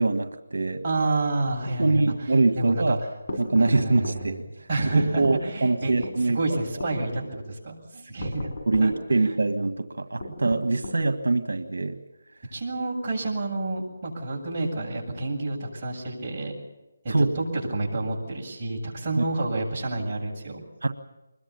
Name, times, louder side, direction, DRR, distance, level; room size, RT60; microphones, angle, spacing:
voice 1, 0.0-0.8 1.8-3.0 3.4-4.4 4.9-6.4 8.7-12.0 17.1-17.3 19.2-19.3 20.8-20.9, right 3 dB, 85° right, 8 dB, 1.6 m, -23 dB
voice 2, 0.8-2.0 2.5-3.0 3.6-4.2 4.7-8.5 8.8-8.9 9.3-9.4 12.5-16.6 17.0-20.6, right 2 dB, 25° right, -4 dB, 7.8 m, -29 dB
sound 1, 3.3-4.2 5.2-5.4 6.0-6.2 6.8-7.0 8.2-8.9 10.2-11.0, left 1 dB, 45° left, 6.2 m, -36 dB
25.5 x 22.0 x 7.1 m, 0.99 s
figure-of-eight pair, 170°, 0 cm